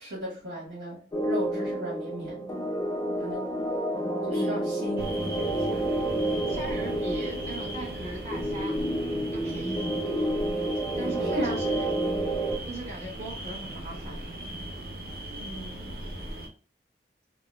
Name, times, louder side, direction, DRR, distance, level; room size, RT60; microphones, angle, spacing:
voice 1, 0.0-2.6 3.2-3.5 4.3-5.0 5.3-5.9 11.2-11.6 15.3-15.9, right 1 dB, 85° right, -6 dB, 1.3 m, -37 dB
sound 1, 1.1-12.6, right 1 dB, 20° left, 0.4 m, -29 dB
voice 2, 4.3-4.7 6.5-8.8 9.3-10.3 11.0-11.9 12.7-14.2, right 1 dB, 40° right, -2 dB, 1.1 m, -39 dB
sound 2, 5.0-16.5, right 1 dB, 60° right, 0.7 m, -38 dB
3.7 x 2.0 x 2.3 m, 0.39 s
head